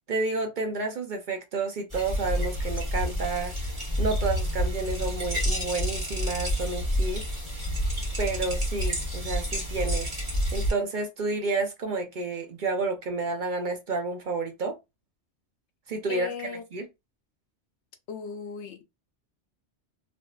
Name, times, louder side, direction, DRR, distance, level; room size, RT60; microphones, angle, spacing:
voice 1, 0.1-3.7 4.0-7.3 8.2-10.3 10.5-14.8 15.9-16.3 16.7-16.9, right 3 dB, 55° right, 0.7 m, -30 dB
sound 1, 1.9-10.7, equal, 25° right, 1.2 m, -29 dB
voice 2, 16.1-16.6 18.1-18.8, left 6 dB, 80° left, 0.9 m, -36 dB
3.4 x 2.6 x 2.3 m
omnidirectional pair, 1.1 m